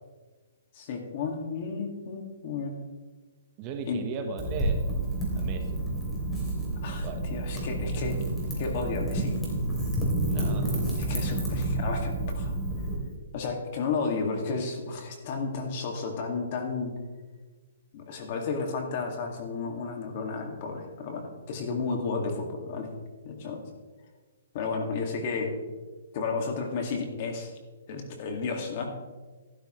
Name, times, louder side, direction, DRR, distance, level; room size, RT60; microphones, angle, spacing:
voice 1, 0.7-2.8 3.9-4.0 6.8-8.2 8.6-9.4 11.0-12.5 13.3-16.9 17.9-22.9 23.2-23.6 24.5-25.5 26.1-27.5 27.9-29.0, left 4 dB, 40° left, 3 dB, 2.1 m, -32 dB
voice 2, 3.6-4.8 5.3-5.6 7.0-7.3 10.3-10.7, right 5 dB, 30° right, 5 dB, 1.1 m, -36 dB
Wind / Fire, 4.4-13.0, right 2 dB, 10° left, 3.1 m, -29 dB
12.5 x 12.0 x 3.2 m, 1.3 s
hypercardioid pair, 160°, 0 cm